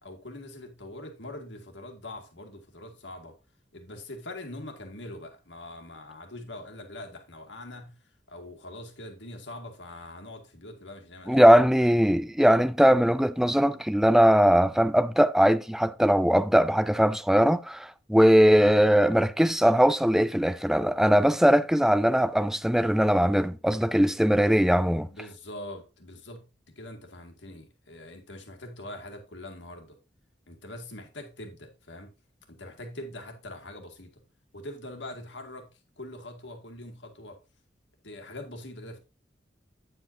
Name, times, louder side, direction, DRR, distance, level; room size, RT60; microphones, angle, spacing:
voice 1, 0.0-3.4 3.7-8.0 8.3-12.0 25.1-30.0 30.5-32.1 32.5-34.1 34.5-37.4 38.0-39.0, left 1 dB, 85° left, 2.0 m, -43 dB
voice 2, 11.3-25.1, equal, ahead, 0.5 m, -20 dB
9.2 x 7.8 x 2.7 m
head